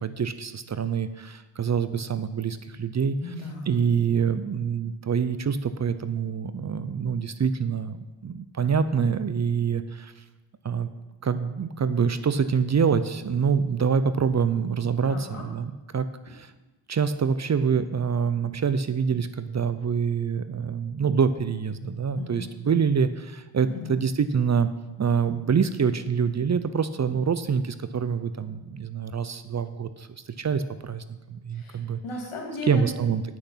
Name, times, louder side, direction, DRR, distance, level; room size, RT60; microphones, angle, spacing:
voice 1, 0.0-3.2 3.7-8.0 8.2-10.1 10.6-10.9 11.2-16.5 16.9-24.7 25.0-30.1 30.4-31.0 31.3-32.0 32.7-33.4, right 6 dB, 35° right, 13 dB, 0.5 m, -26 dB
voice 2, 3.2-3.8 15.1-15.4 22.2-22.5 23.6-24.0 31.5-32.9, left 2 dB, 80° left, 0 dB, 2.5 m, -36 dB
8.4 x 6.7 x 5.7 m, 1.1 s
cardioid pair, 60°, 49 cm